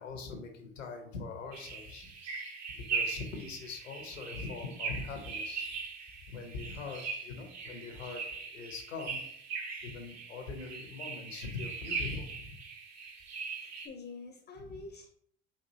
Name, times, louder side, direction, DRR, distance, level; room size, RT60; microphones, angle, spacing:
voice 1, 0.0-2.1 2.7-5.7 6.3-9.2 9.8-12.6 14.6-14.8, left 4 dB, 90° left, 3 dB, 0.8 m, -42 dB
sound 1, 1.5-13.9, right 5 dB, 45° right, 0.9 m, -40 dB
voice 2, 13.6-15.1, left 3 dB, 25° left, 5 dB, 0.5 m, -46 dB
4.3 x 2.6 x 2.7 m, 0.65 s
hypercardioid pair, 70°, 38 cm